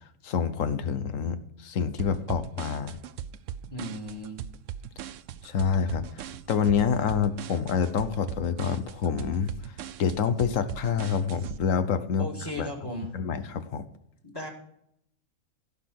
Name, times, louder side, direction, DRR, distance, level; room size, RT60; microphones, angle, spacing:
voice 1, 0.2-3.0 5.4-6.0 6.5-9.5 10.0-12.3 12.6-12.7 13.1-13.9, left 7 dB, 70° left, 12 dB, 1.3 m, -27 dB
sound 1, 2.0-11.6, right 9 dB, 70° right, 0.9 m, -39 dB
voice 2, 3.7-4.4 12.2-13.2 14.3-14.5, equal, 15° left, 1 dB, 2.2 m, -36 dB
16.0 x 6.0 x 6.5 m, 0.74 s
omnidirectional pair, 1.4 m